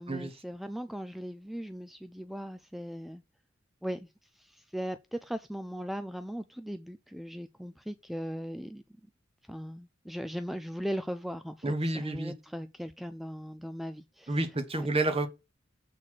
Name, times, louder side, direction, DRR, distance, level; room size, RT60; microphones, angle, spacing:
voice 1, 0.0-3.2 3.8-4.1 4.3-8.8 9.5-14.9, equal, ahead, 0.4 m, -38 dB
voice 2, 11.6-12.3 14.3-15.3, right 2 dB, 30° right, 1.2 m, -29 dB
7.4 x 4.2 x 6.3 m
head